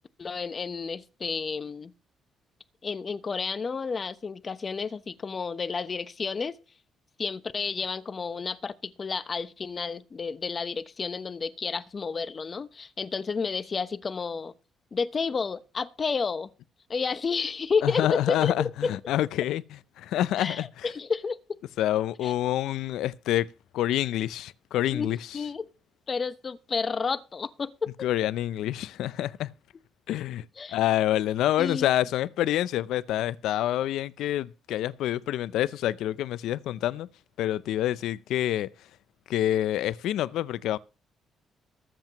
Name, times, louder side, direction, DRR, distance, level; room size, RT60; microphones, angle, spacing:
voice 1, 0.2-1.9 2.8-6.6 7.2-14.5 14.9-16.5 16.9-18.5 18.8-18.9 20.4-21.6 22.2-22.3 24.9-25.1 25.3-25.7 26.1-28.1 30.6-30.8 31.6-31.9, left 5 dB, 40° left, 0.9 m, -31 dB
voice 2, 17.8-20.9 21.8-23.5 23.7-25.2 28.0-29.5 30.1-37.1 37.4-38.7 39.3-40.8, left 13 dB, 85° left, 0.5 m, -27 dB
22.5 x 7.6 x 3.0 m
cardioid pair, 90°, 0 cm